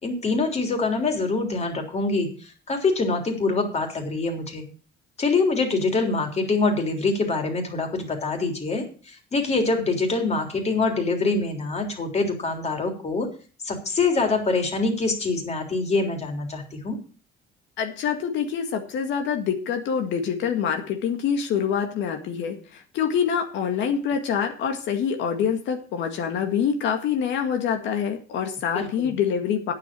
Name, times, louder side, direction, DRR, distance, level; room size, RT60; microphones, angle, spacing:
voice 1, 0.0-4.7 5.2-13.3 13.6-17.0 28.7-29.1, left 3 dB, 35° left, 4 dB, 3.5 m, -25 dB
voice 2, 17.8-29.7, left 7 dB, 75° left, 5 dB, 2.0 m, -26 dB
9.4 x 7.8 x 7.5 m, 0.39 s
cardioid pair, 110°, 19 cm